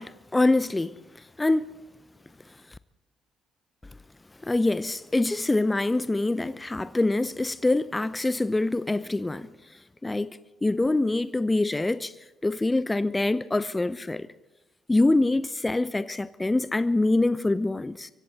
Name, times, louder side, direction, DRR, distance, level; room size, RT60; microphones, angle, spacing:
voice 1, 0.0-1.7 4.4-9.5 10.0-12.1 12.4-14.3 14.9-18.1, left 2 dB, 15° left, 0.7 m, -25 dB
29.5 x 24.0 x 4.2 m
figure-of-eight pair, 45°, 0 cm